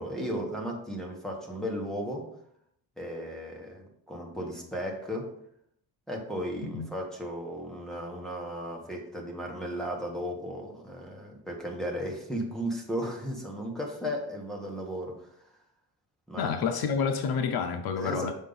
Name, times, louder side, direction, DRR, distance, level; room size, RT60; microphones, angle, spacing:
voice 1, 0.0-2.3 3.0-5.3 6.1-15.3 16.3-16.5 18.0-18.3, equal, ahead, -1 dB, 1.3 m, -35 dB
voice 2, 16.4-18.3, left 6 dB, 75° left, 5 dB, 0.6 m, -29 dB
7.2 x 4.6 x 3.9 m, 0.71 s
wide cardioid pair, 155°, 37 cm